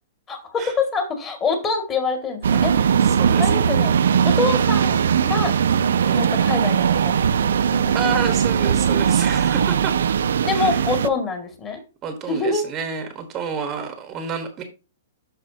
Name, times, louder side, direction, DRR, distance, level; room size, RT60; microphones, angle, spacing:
voice 1, 0.3-2.9 3.4-3.9 4.2-5.5 6.2-7.1 7.4-7.9 10.4-11.8 12.3-12.7, left 4 dB, 20° left, 5 dB, 2.1 m, -25 dB
sound 1, 2.4-11.1, right 7 dB, 80° right, 0.5 m, -19 dB
voice 2, 3.0-3.6 6.0-6.3 7.9-10.0 10.5-10.8 12.0-14.6, right 6 dB, 25° right, 7 dB, 1.2 m, -29 dB
12.5 x 4.4 x 2.8 m, 0.30 s
hypercardioid pair, 150°, 0 cm